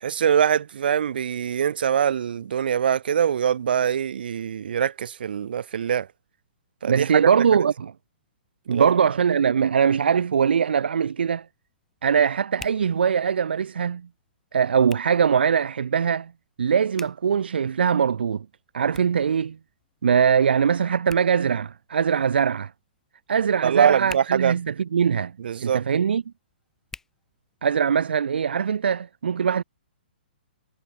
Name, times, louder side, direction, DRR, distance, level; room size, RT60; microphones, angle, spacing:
voice 1, 0.0-6.1 6.8-7.3 8.7-8.9 23.6-24.5 25.4-25.8, right 8 dB, 70° right, 1.9 m, -23 dB
voice 2, 6.8-7.9 8.7-11.5 12.0-14.1 14.5-16.3 16.6-18.5 18.7-19.6 20.0-22.7 23.3-25.3 25.6-26.2 27.6-29.6, right 7 dB, 85° right, 0.4 m, -21 dB
Hands, 10.3-28.0, left 4 dB, 5° left, 4.2 m, -51 dB
hypercardioid pair, 145°, 5 cm